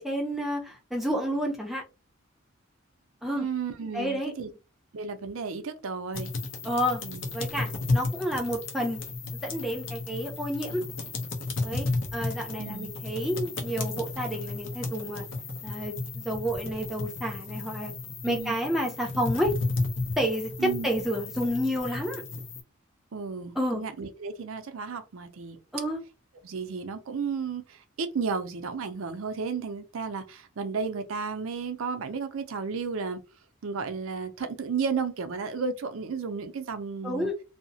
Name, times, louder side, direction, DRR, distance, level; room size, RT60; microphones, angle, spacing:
voice 1, 0.0-1.8 3.2-3.5 3.9-4.3 6.6-7.0 7.3-9.0 9.4-10.8 11.6-11.9 12.1-15.2 15.6-17.9 18.2-19.5 20.2-22.2 23.6-23.8 25.7-26.0 37.0-37.4, equal, ahead, 0.6 m, -30 dB
voice 2, 3.3-4.5 4.9-6.3 7.0-7.2 12.6-12.9 18.2-18.6 20.6-20.9 23.1-25.6 26.4-33.2 33.6-37.3, right 5 dB, 75° right, 0.5 m, -33 dB
sound 1, 6.1-22.6, left 3 dB, 65° left, 0.7 m, -33 dB
2.8 x 2.0 x 2.7 m
head